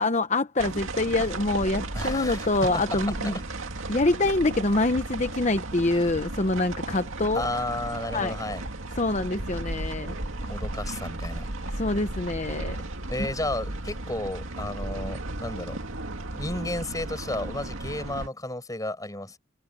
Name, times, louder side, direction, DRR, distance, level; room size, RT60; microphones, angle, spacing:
voice 1, 0.0-3.3 3.9-7.4 8.1-8.4 9.0-10.2 11.7-12.8 13.2-13.3, left 2 dB, 35° left, 0.8 m, -25 dB
sound 1, 0.6-18.3, right 2 dB, 75° right, 2.2 m, -34 dB
voice 2, 1.9-2.8 3.2-3.3 7.3-8.6 10.4-11.5 13.1-15.8 16.3-19.4, left 1 dB, 15° left, 5.5 m, -33 dB
head